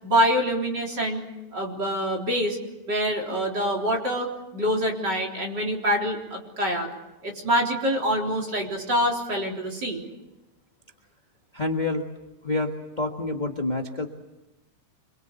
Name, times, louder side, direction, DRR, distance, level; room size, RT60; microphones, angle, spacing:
voice 1, 0.0-1.2 1.5-2.6 2.9-6.9 7.2-10.0, equal, 35° right, 0 dB, 4.3 m, -25 dB
voice 2, 11.5-12.0 12.4-14.1, left 2 dB, 25° left, 2 dB, 0.9 m, -27 dB
26.0 x 23.0 x 8.2 m, 0.99 s
omnidirectional pair, 3.3 m